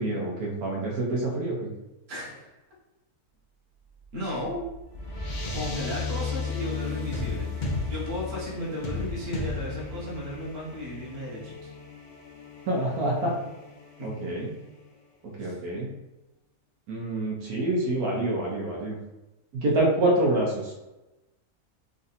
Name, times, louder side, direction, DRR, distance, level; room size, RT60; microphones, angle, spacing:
voice 1, 0.0-1.7 12.7-13.3 14.0-14.5 15.4-15.9 16.9-19.0 19.5-20.7, right 1 dB, 80° right, -3 dB, 1.4 m, -26 dB
voice 2, 2.1-2.5 4.1-4.6 5.5-7.5 7.9-11.7 14.0-14.1 15.4-15.9, left 1 dB, 45° right, -5 dB, 1.4 m, -35 dB
sound 1, 4.0-14.8, left 3 dB, 70° left, 0.4 m, -35 dB
3.8 x 2.6 x 4.0 m, 0.99 s
omnidirectional pair, 1.6 m